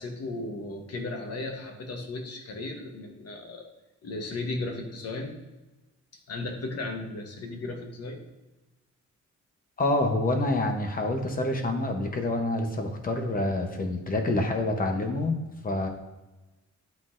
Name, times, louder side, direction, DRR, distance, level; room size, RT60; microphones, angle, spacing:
voice 1, 0.0-3.7 4.0-5.4 6.3-8.2, left 2 dB, 55° left, 3 dB, 1.1 m, -35 dB
voice 2, 9.8-15.9, left 2 dB, 30° left, 4 dB, 0.8 m, -27 dB
11.0 x 3.8 x 2.5 m, 1.1 s
wide cardioid pair, 180°, 29 cm